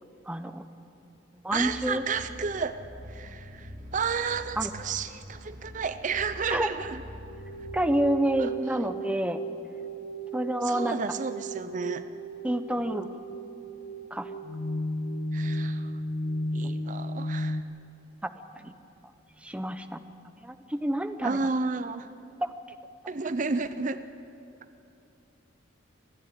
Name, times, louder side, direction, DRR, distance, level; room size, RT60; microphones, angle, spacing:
voice 1, 0.3-0.6 1.4-2.0 3.3-3.4 4.6-4.7 6.5-6.7 7.7-9.4 10.3-11.0 12.4-13.1 14.1-14.3 18.6-18.7 19.4-20.0 20.4-21.4 22.4-22.5, right 1 dB, 5° right, 9 dB, 0.7 m, -28 dB
voice 2, 1.5-2.8 3.1-7.0 8.4-8.8 10.6-12.0 15.3-16.0 16.5-17.6 21.2-22.1 23.1-24.0, right 5 dB, 40° right, 12 dB, 0.6 m, -32 dB
sound 1, 1.5-7.9, left 1 dB, 75° right, 3.2 m, -45 dB
sound 2, 7.3-17.6, right 1 dB, 65° left, 1.3 m, -34 dB
28.5 x 10.0 x 9.9 m, 2.7 s
head